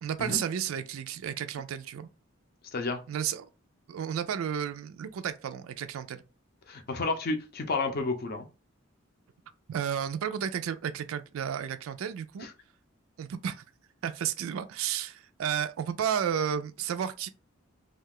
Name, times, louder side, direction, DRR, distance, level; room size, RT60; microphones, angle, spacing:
voice 1, 0.0-2.1 3.1-3.5 3.9-6.2 9.7-12.5 13.2-13.6 14.0-17.3, right 8 dB, 90° right, 0.3 m, -32 dB
voice 2, 6.7-8.5, left 3 dB, 50° left, 0.5 m, -31 dB
2.4 x 2.2 x 3.5 m
head